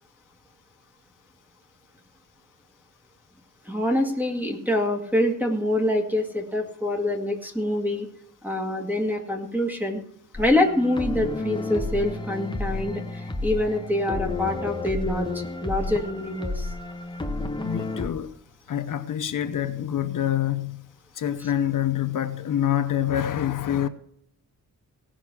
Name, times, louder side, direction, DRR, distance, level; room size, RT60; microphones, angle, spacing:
voice 1, 3.7-8.1 8.4-10.0 10.4-16.7, left 1 dB, 5° right, 2.1 m, -25 dB
sound 1, 10.3-18.1, left 2 dB, 15° left, 1.1 m, -31 dB
voice 2, 17.6-18.4 18.7-20.8 21.1-23.9, left 11 dB, 70° left, 0.8 m, -26 dB
17.5 x 6.3 x 6.0 m
wide cardioid pair, 150°, 33 cm